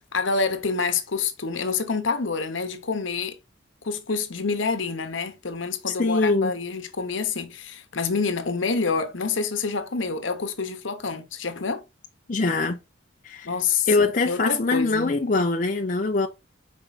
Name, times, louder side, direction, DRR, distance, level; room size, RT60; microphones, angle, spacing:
voice 1, 0.1-3.4 3.8-11.8 13.4-15.2, left 5 dB, 75° left, 1.0 m, -27 dB
voice 2, 5.9-6.5 12.3-12.8 13.2-13.5 13.9-16.3, left 3 dB, 40° left, 0.5 m, -23 dB
5.1 x 4.6 x 4.0 m
head